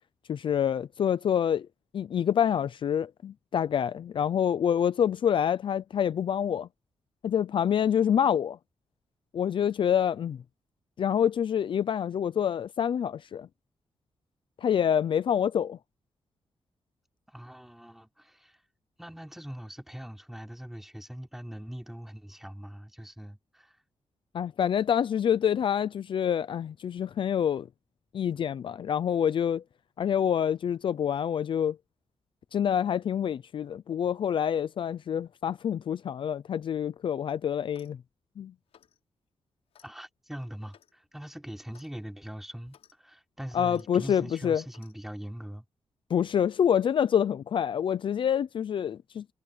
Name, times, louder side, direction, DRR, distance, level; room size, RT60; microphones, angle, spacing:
voice 1, 0.3-1.7 1.9-6.7 7.2-8.6 9.3-10.4 11.0-13.5 14.6-15.8 24.3-27.7 28.1-29.6 30.0-31.8 32.5-38.0 38.4-38.5 43.5-44.6 46.1-49.3, left 8 dB, 55° left, 0.5 m, -27 dB
voice 2, 17.3-18.6 19.0-23.8 39.8-45.6, equal, 5° right, 5.9 m, -42 dB
Clock, 37.6-38.0 38.7-39.0 39.7-39.9 40.7-41.0 41.7-41.9 42.7-42.9 43.7-43.9 44.7-45.0, left 9 dB, 85° left, 6.7 m, -60 dB
wide cardioid pair, 160°, 10 cm